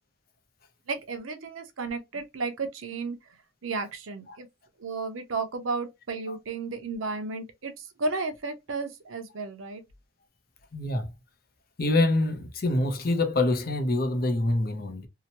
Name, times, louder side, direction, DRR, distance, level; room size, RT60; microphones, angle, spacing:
voice 1, 0.9-3.4 3.6-4.5 4.8-9.8, right 3 dB, 75° right, 0.7 m, -33 dB
voice 2, 10.7-11.1 11.8-15.1, left 2 dB, 45° left, 0.6 m, -25 dB
2.8 x 2.1 x 2.8 m
head